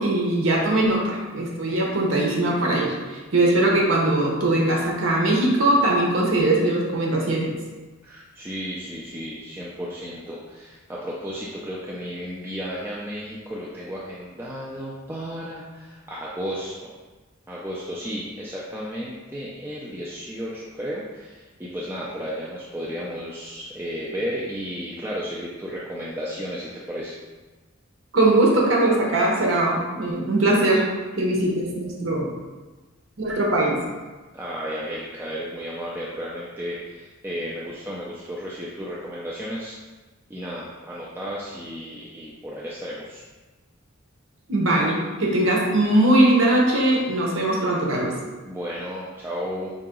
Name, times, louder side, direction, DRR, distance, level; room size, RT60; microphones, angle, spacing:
voice 1, 0.0-7.6 28.1-30.9 31.2-32.3 33.2-33.8 44.5-48.1, right 1 dB, 65° right, -2 dB, 0.9 m, -21 dB
voice 2, 8.0-16.9 17.5-27.2 34.3-39.8 40.3-43.2 48.4-49.7, equal, 10° right, -6 dB, 0.4 m, -33 dB
5.0 x 2.8 x 3.7 m, 1.2 s
head